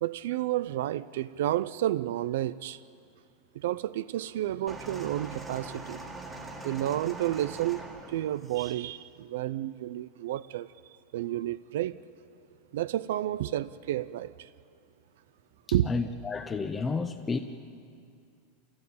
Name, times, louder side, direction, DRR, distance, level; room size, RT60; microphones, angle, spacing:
voice 1, 0.0-2.8 3.5-6.0 6.6-10.7 11.1-12.0 12.7-14.5 15.7-15.9, right 13 dB, 70° right, 0.5 m, -31 dB
sound 1, 4.7-8.8 9.7-9.8, right 2 dB, 5° right, 2.0 m, -42 dB
voice 2, 15.9-17.4, left 4 dB, 10° left, 0.6 m, -31 dB
26.5 x 16.5 x 8.7 m
supercardioid pair, 175°, 0 cm